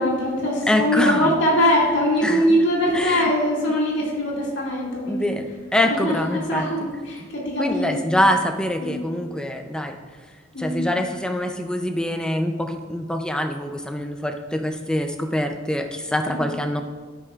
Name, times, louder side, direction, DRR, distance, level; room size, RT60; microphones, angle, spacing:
voice 1, 0.0-5.3 5.8-8.2 8.8-9.0 10.5-10.9 16.3-16.5, equal, 70° left, -4 dB, 2.1 m, -22 dB
voice 2, 0.7-1.3 2.2-2.6 2.9-3.2 5.1-6.6 7.6-10.0 10.6-16.8, left 1 dB, 5° left, 5 dB, 0.4 m, -24 dB
14.0 x 5.6 x 2.4 m, 1.5 s
head